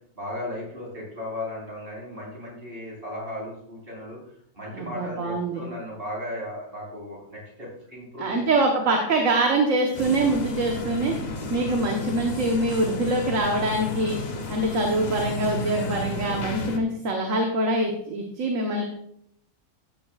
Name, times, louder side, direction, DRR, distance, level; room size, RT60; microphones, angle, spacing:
voice 1, 0.1-4.2 4.5-8.7, left 1 dB, 40° right, -4 dB, 4.4 m, -36 dB
voice 2, 4.7-5.6 8.2-11.1 11.5-14.2 14.5-18.8, right 2 dB, 60° right, 1 dB, 1.5 m, -24 dB
sound 1, 9.9-16.8, left 2 dB, 35° left, 0.8 m, -32 dB
13.5 x 9.0 x 2.4 m, 0.70 s
omnidirectional pair, 1.5 m